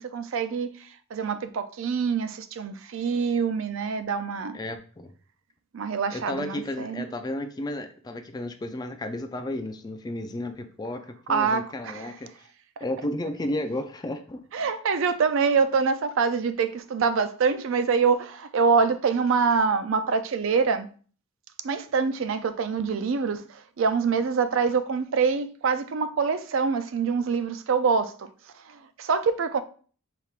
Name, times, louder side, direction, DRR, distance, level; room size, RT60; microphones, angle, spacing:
voice 1, 0.0-4.6 5.7-7.0 11.3-12.1 12.8-12.9 14.5-20.9 21.6-28.3 28.5-29.6, right 5 dB, 60° right, 0.4 m, -25 dB
voice 2, 4.5-5.1 6.1-12.3 12.8-14.4, left 1 dB, 20° left, 0.3 m, -33 dB
5.7 x 3.4 x 2.4 m
head